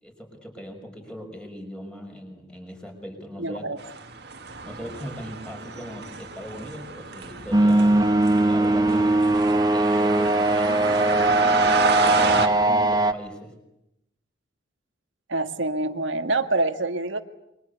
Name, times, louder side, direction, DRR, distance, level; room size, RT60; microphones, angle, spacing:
voice 1, 0.0-3.7 4.6-13.5, equal, 5° left, 3 dB, 5.7 m, -39 dB
voice 2, 3.4-3.8 15.3-17.2, right 2 dB, 75° right, 8 dB, 1.8 m, -26 dB
sound 1, 3.8-12.5, right 4 dB, 55° right, 2.2 m, -30 dB
sound 2, 7.5-13.1, right 2 dB, 20° right, 1.2 m, -20 dB
28.0 x 23.5 x 8.2 m, 0.85 s
head